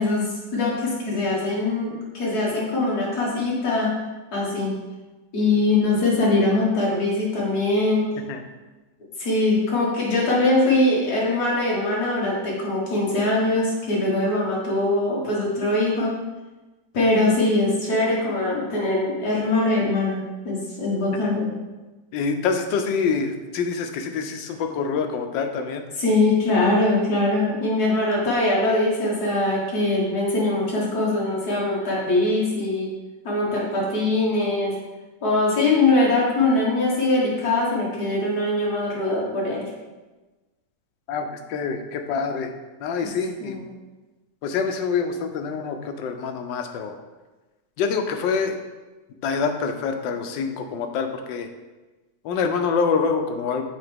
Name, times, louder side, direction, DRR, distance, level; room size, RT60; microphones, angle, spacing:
voice 1, 0.0-3.9 4.3-4.7 5.3-8.1 9.2-16.1 16.9-20.2 20.4-21.5 26.0-32.9 33.2-34.8 35.2-39.7 43.4-43.7, left 2 dB, 60° left, -5 dB, 2.0 m, -22 dB
voice 2, 22.1-25.8 41.1-42.5 42.8-43.6 44.4-46.9 47.8-48.6 49.2-51.5 52.2-53.6, left 5 dB, 90° left, 6 dB, 1.3 m, -26 dB
6.8 x 4.2 x 3.5 m, 1.2 s
omnidirectional pair, 1.9 m